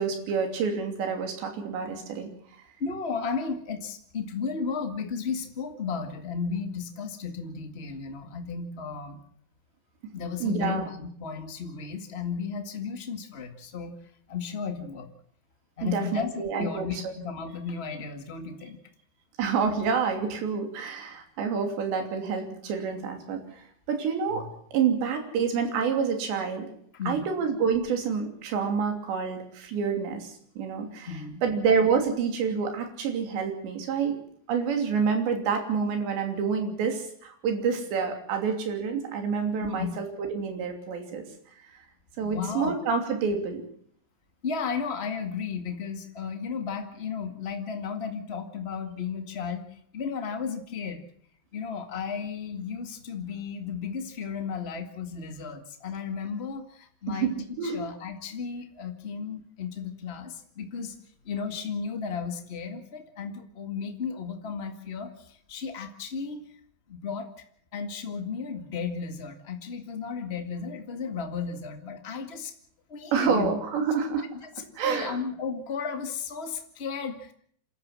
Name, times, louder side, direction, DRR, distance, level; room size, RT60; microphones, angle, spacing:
voice 1, 0.0-2.3 10.4-10.9 15.8-17.1 19.4-26.7 27.1-31.1 31.4-34.2 34.5-41.2 42.2-43.6 57.1-57.8 73.1-74.3 74.8-75.2, right 6 dB, 85° right, 5 dB, 5.2 m, -28 dB
voice 2, 2.8-9.2 10.1-13.9 14.3-15.1 15.8-18.8 26.9-27.3 31.1-31.4 39.6-39.9 42.2-42.7 44.4-49.6 49.9-51.0 51.5-57.3 57.6-60.9 61.2-66.4 66.9-67.3 67.7-72.5 72.9-73.5 74.8-77.3, left 5 dB, 50° left, 5 dB, 0.7 m, -34 dB
27.5 x 13.0 x 7.6 m, 0.63 s
omnidirectional pair, 4.9 m